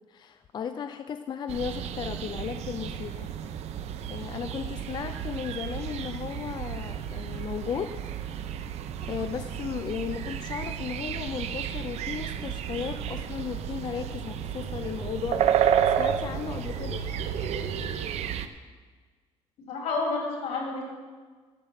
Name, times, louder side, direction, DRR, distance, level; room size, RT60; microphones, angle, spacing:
voice 1, 0.1-3.3 4.1-7.9 9.0-15.7 16.0-17.0, left 7 dB, 40° left, 9 dB, 0.4 m, -35 dB
sound 1, 1.5-18.5, right 9 dB, 75° right, 0.7 m, -31 dB
sound 2, 10.9-17.9, left 1 dB, 70° left, 1.5 m, -44 dB
voice 2, 19.7-20.9, left 3 dB, 85° left, -1 dB, 3.5 m, -30 dB
11.5 x 8.0 x 5.9 m, 1.5 s
cardioid pair, 135°, 11 cm